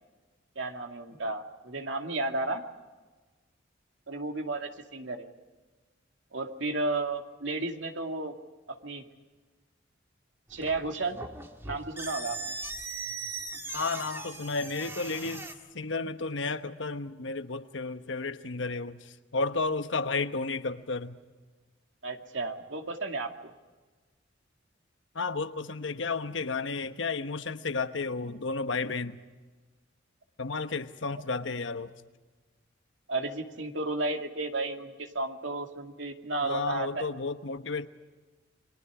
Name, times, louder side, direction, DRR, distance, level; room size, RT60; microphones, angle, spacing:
voice 1, 0.6-2.6 4.1-5.3 6.3-8.3 8.7-9.0 10.5-11.2 11.6-12.5 22.0-23.5 33.1-37.0, right 2 dB, 80° right, 2.4 m, -33 dB
sound 1, 10.5-15.5, right 3 dB, 15° right, 1.9 m, -39 dB
voice 2, 13.7-15.5 15.7-21.2 25.1-29.2 30.4-31.9 36.4-37.9, left 4 dB, 75° left, 1.1 m, -32 dB
29.5 x 23.0 x 4.9 m
head